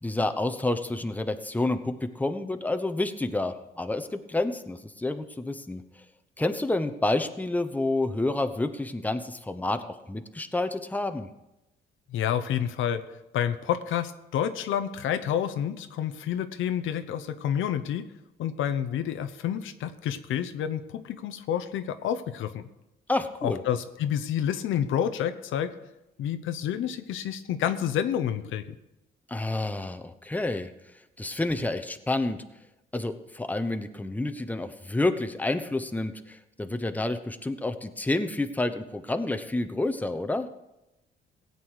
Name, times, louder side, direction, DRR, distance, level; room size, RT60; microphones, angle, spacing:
voice 1, 0.0-5.8 6.4-11.3 23.1-23.6 29.3-30.7 31.2-32.4 32.9-40.5, left 2 dB, 10° left, 8 dB, 0.9 m, -29 dB
voice 2, 12.1-13.0 13.3-18.1 18.4-22.6 23.4-25.7 26.2-28.7, left 9 dB, 80° left, 10 dB, 0.8 m, -29 dB
16.5 x 8.5 x 4.8 m, 0.93 s
cardioid pair, 90°, 20 cm